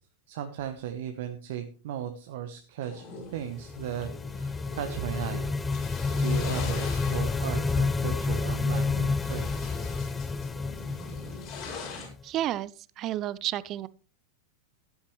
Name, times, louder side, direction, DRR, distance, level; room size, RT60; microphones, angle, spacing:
voice 1, 0.3-5.5 6.2-9.7, right 9 dB, 55° right, 7 dB, 1.2 m, -36 dB
sound 1, 2.8-12.1, left 3 dB, 40° left, 6.6 m, -43 dB
sound 2, 3.5-12.2, left 4 dB, 10° left, 0.5 m, -30 dB
voice 2, 12.2-13.9, right 13 dB, 35° right, 20 dB, 0.6 m, -31 dB
15.0 x 11.5 x 3.2 m, 0.37 s
figure-of-eight pair, 90°, 0 cm